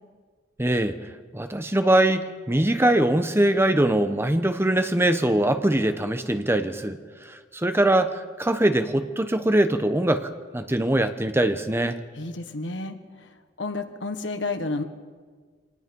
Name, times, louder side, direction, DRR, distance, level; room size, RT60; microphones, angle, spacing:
voice 1, 0.6-1.0 1.3-12.0, right 1 dB, 15° right, 9 dB, 0.9 m, -22 dB
voice 2, 12.1-14.8, left 3 dB, 80° left, 7 dB, 1.5 m, -31 dB
25.0 x 19.5 x 5.4 m, 1.5 s
head